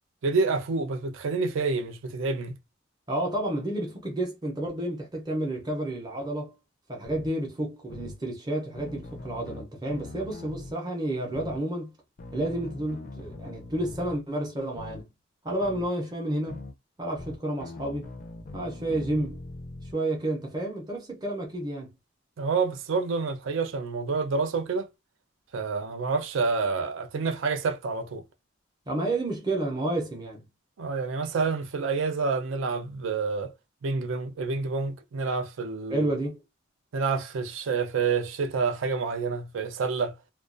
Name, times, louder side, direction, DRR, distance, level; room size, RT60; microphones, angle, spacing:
voice 1, 0.2-2.6 22.4-24.9 25.5-28.2 30.8-33.5 33.8-36.1 36.9-40.1, right 4 dB, 75° right, 0.4 m, -28 dB
voice 2, 3.1-6.5 6.9-11.9 12.3-15.1 15.4-16.6 17.0-18.1 18.5-19.4 19.9-21.9 28.9-30.4 35.9-36.4, right 1 dB, 20° right, 0.5 m, -30 dB
sound 1, 7.0-7.3 7.9-8.2 8.8-10.7 11.3-11.6 12.2-14.2 14.7-15.0 15.6-15.9 16.5-16.7 17.2-19.9, left 2 dB, 40° left, 0.4 m, -41 dB
2.2 x 2.2 x 2.4 m
head